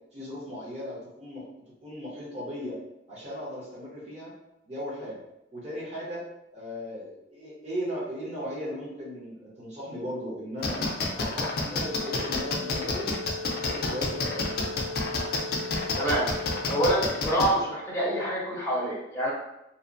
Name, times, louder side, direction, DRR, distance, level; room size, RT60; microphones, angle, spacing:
voice 1, 0.1-1.5 1.8-2.8 3.1-4.3 4.7-5.2 5.5-6.2 6.5-10.8 11.1-13.2 13.5-14.9, equal, 40° right, -6 dB, 0.9 m, -37 dB
sound 1, 10.6-17.5, left 3 dB, 55° left, 0.4 m, -28 dB
sound 2, 11.8-16.7, left 3 dB, 80° right, 0.4 m, -38 dB
voice 2, 15.9-16.3 16.7-19.3, right 1 dB, 15° left, -7 dB, 0.6 m, -26 dB
2.8 x 2.0 x 2.5 m, 0.86 s
head